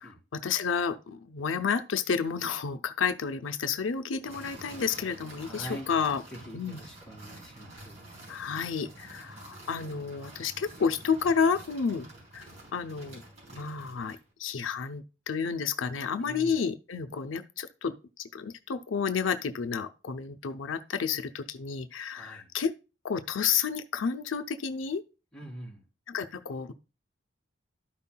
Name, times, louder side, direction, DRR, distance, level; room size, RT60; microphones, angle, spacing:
voice 1, 0.0-6.2 6.5-6.8 8.3-12.1 12.3-12.5 12.7-13.2 13.5-22.7 23.0-25.0 26.1-26.7, left 6 dB, 85° left, 0.5 m, -31 dB
sound 1, 4.2-14.3, right 1 dB, 40° right, 4.2 m, -48 dB
voice 2, 5.3-5.9 6.3-8.0 16.2-16.6 22.1-22.5 25.3-25.8, equal, 5° left, 3.2 m, -44 dB
12.5 x 5.5 x 2.2 m
head